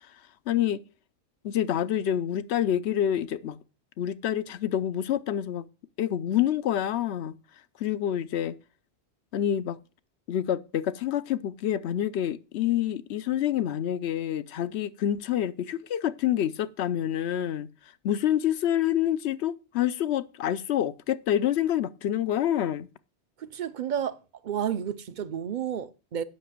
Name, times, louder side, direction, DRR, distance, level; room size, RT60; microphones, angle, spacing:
voice 1, 0.5-0.8 1.4-3.6 4.0-5.7 6.0-7.3 7.8-8.5 9.3-9.8 10.3-17.7 18.0-22.9, left 11 dB, 80° left, 0.9 m, -27 dB
voice 2, 23.4-24.2 24.4-26.2, right 9 dB, 50° right, 0.7 m, -31 dB
8.5 x 5.9 x 7.2 m
omnidirectional pair, 1.1 m